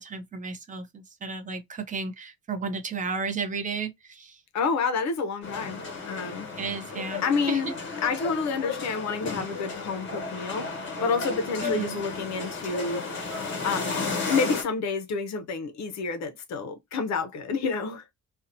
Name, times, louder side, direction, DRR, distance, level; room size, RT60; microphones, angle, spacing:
voice 1, 0.0-4.4 6.6-7.7 11.6-12.0, right 4 dB, 25° right, 0.4 m, -33 dB
voice 2, 4.5-5.8 6.1-6.5 7.2-7.7 8.0-13.0 13.6-18.0, left 4 dB, 60° left, 0.5 m, -29 dB
sound 1, 5.4-14.6, left 4 dB, 40° left, 1.1 m, -33 dB
2.6 x 2.0 x 2.5 m
cardioid pair, 160°, 31 cm